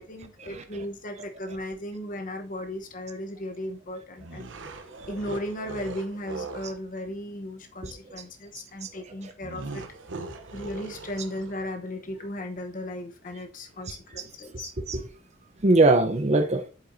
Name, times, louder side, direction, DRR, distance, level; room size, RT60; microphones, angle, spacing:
voice 1, 0.0-4.5 5.0-9.8 10.5-14.7, left 1 dB, 45° left, 1.0 m, -36 dB
sound 1, 4.2-6.8 9.4-11.7, right 3 dB, 70° right, 0.9 m, -40 dB
voice 2, 13.9-14.3 14.5-15.1 15.6-16.6, right 2 dB, 35° right, 0.7 m, -22 dB
8.3 x 7.3 x 2.7 m
head